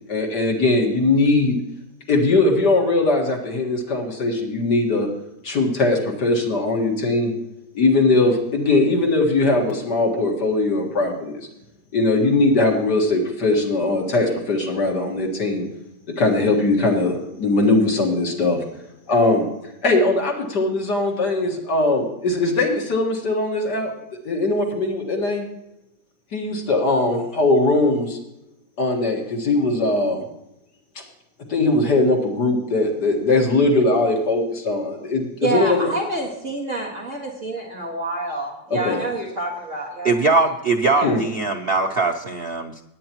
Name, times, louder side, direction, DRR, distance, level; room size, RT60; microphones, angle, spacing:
voice 1, 0.1-1.6 2.1-5.1 5.4-7.3 7.7-11.4 11.9-15.7 16.2-18.6 19.1-19.5 19.8-23.9 24.2-25.5 26.3-28.2 28.8-30.2 31.5-35.9 38.8-39.0 41.0-41.2, left 2 dB, 65° left, 0 dB, 2.3 m, -20 dB
voice 2, 35.4-40.1 41.0-41.1, right 2 dB, 40° right, -2 dB, 2.2 m, -27 dB
voice 3, 40.0-42.8, right 3 dB, 80° right, 3 dB, 0.5 m, -21 dB
18.5 x 9.5 x 3.0 m, 0.88 s
omnidirectional pair, 2.0 m